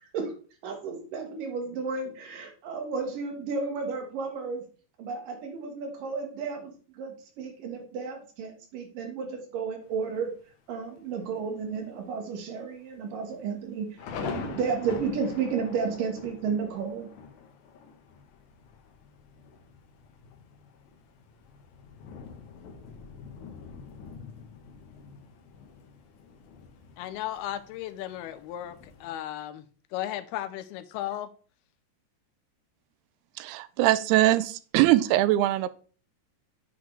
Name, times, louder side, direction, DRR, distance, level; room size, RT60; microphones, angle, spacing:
voice 1, 0.6-4.6 5.0-10.3 10.7-13.9 14.2-17.1, right 5 dB, 65° right, 2.8 m, -32 dB
Thunder, 9.8-10.4 10.9-11.0 11.3-11.7 12.1-12.2 12.9-29.2, left 6 dB, 65° left, 2.2 m, -44 dB
voice 2, 27.0-29.6 29.9-31.3, left 12 dB, 85° left, 2.5 m, -35 dB
voice 3, 33.4-35.7, right 15 dB, 90° right, 2.6 m, -22 dB
8.1 x 8.0 x 3.2 m
omnidirectional pair, 4.5 m